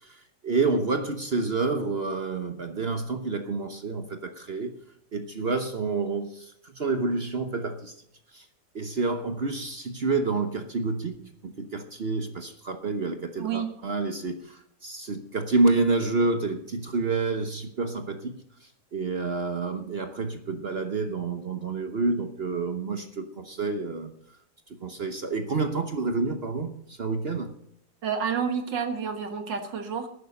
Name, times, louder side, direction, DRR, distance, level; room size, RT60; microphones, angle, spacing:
voice 1, 0.0-4.7 5.1-7.9 8.3-8.5 8.7-24.1 24.8-27.5, right 3 dB, 45° right, 0.8 m, -29 dB
voice 2, 13.4-13.7 28.0-30.1, right 6 dB, 70° right, 2.2 m, -29 dB
11.5 x 9.9 x 6.4 m
omnidirectional pair, 2.0 m